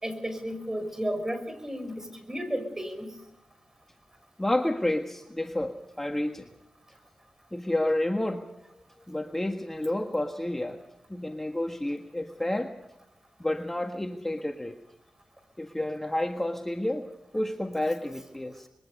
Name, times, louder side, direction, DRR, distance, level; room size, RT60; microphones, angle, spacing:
voice 1, 0.0-3.1, equal, 20° right, 9 dB, 5.6 m, -33 dB
voice 2, 4.4-6.5 7.5-8.5 9.1-10.8 11.1-12.7 13.4-14.8 15.6-17.0 17.3-18.7, left 1 dB, 15° left, 5 dB, 1.6 m, -30 dB
26.0 x 22.0 x 5.5 m, 0.85 s
cardioid pair, 55°, 2 cm